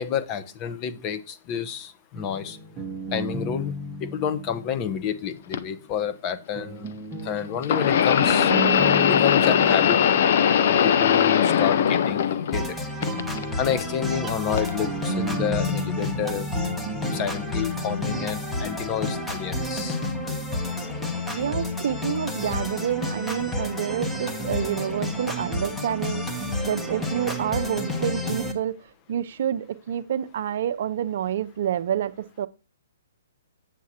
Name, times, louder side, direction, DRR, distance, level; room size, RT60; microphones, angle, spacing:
voice 1, 0.0-2.6 3.1-3.7 4.0-6.9 7.2-8.5 9.1-10.0 10.6-12.7 13.6-16.5 17.1-20.0, left 8 dB, 30° left, 0.8 m, -29 dB
sound 1, 2.1-5.3 6.5-11.2 12.0-19.7, right 2 dB, 10° right, 0.9 m, -35 dB
sound 2, 5.5-5.6 7.6-12.7 13.0-13.8 14.6-14.7 15.7-15.8, left 8 dB, 55° left, 0.6 m, -20 dB
sound 3, 12.5-28.5, left 2 dB, 10° left, 1.1 m, -30 dB
voice 2, 21.3-28.8 29.1-32.5, right 10 dB, 55° right, 0.5 m, -28 dB
8.3 x 7.3 x 2.9 m
hypercardioid pair, 145°, 0 cm